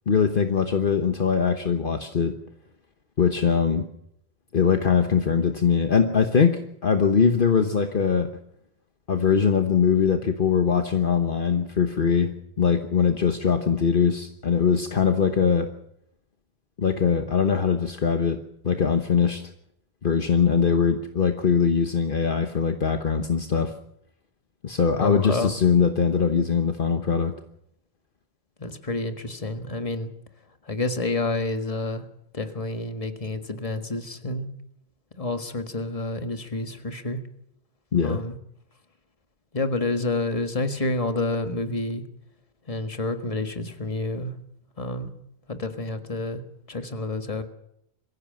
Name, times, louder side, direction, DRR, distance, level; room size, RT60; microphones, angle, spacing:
voice 1, 0.1-2.3 3.2-3.9 4.5-8.3 9.1-15.7 16.8-18.4 18.6-19.4 20.0-23.7 24.6-27.3 37.9-38.2, left 6 dB, 55° left, 6 dB, 1.3 m, -22 dB
voice 2, 25.0-25.5 28.6-30.1 30.7-32.0 32.3-34.5 35.2-37.2 38.0-38.3 39.5-42.0 42.7-44.3 44.8-45.1 45.5-46.4 46.7-47.4, left 2 dB, 35° left, 7 dB, 1.7 m, -29 dB
23.0 x 15.5 x 7.6 m, 0.77 s
omnidirectional pair, 1.1 m